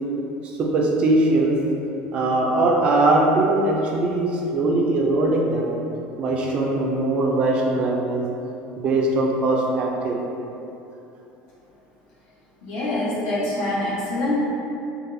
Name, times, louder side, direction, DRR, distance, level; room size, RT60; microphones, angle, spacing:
voice 1, 0.6-1.6 2.1-5.7 6.2-8.2 8.8-10.2, right 2 dB, 30° right, -1 dB, 0.3 m, -21 dB
voice 2, 12.6-14.5, left 1 dB, 75° left, -8 dB, 1.0 m, -25 dB
4.0 x 2.2 x 2.6 m, 2.9 s
cardioid pair, 180°, 4 cm